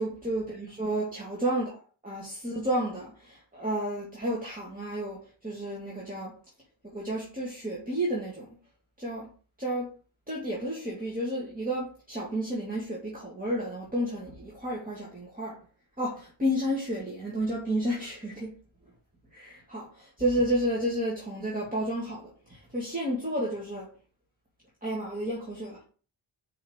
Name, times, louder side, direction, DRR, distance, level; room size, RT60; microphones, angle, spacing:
voice 1, 0.0-1.7 2.0-6.3 6.8-8.6 9.0-9.3 9.6-9.9 10.3-15.6 16.0-18.5 19.3-23.9 24.8-25.8, right 1 dB, 15° right, 2.2 m, -31 dB
5.7 x 4.9 x 6.4 m
wide cardioid pair, 115°, 50 cm